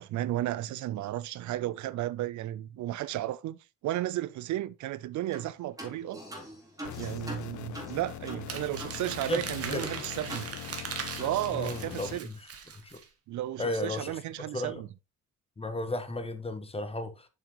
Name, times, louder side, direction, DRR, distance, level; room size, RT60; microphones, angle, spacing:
voice 1, 0.0-6.2 7.0-10.5 11.2-12.3 13.3-14.9, right 14 dB, 75° right, 0.5 m, -33 dB
sound 1, 5.3-5.5 5.8-9.0 9.3-9.4 9.8-10.9 11.2-11.4, right 1 dB, 10° right, 2.5 m, -44 dB
sound 2, 6.8-12.2, left 15 dB, 70° left, 0.5 m, -42 dB
Crumpling crinkling, 8.5-13.0, right 6 dB, 50° right, 1.6 m, -40 dB
voice 2, 11.5-12.3 12.8-13.0 13.6-14.1 14.5-14.8 15.6-17.3, left 2 dB, 20° left, 1.2 m, -34 dB
7.3 x 5.9 x 3.0 m
cardioid pair, 90°, 30 cm